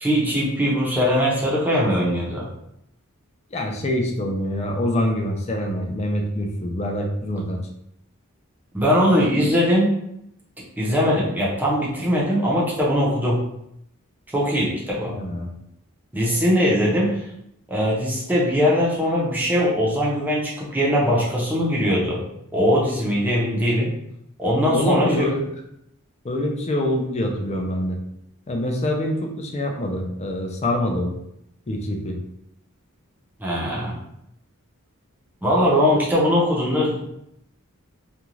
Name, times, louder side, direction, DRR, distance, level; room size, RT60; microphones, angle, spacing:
voice 1, 0.0-2.5 8.7-9.9 10.8-13.4 14.3-15.1 16.1-17.2 17.7-22.2 22.5-23.9 24.4-25.3 33.4-34.0 35.4-37.0, equal, 10° right, -5 dB, 0.7 m, -21 dB
voice 2, 3.5-7.6 15.1-15.5 24.7-25.5 26.2-28.0 28.5-31.1 31.7-32.2, left 1 dB, 30° left, 2 dB, 0.5 m, -25 dB
2.5 x 2.3 x 3.0 m, 0.78 s
head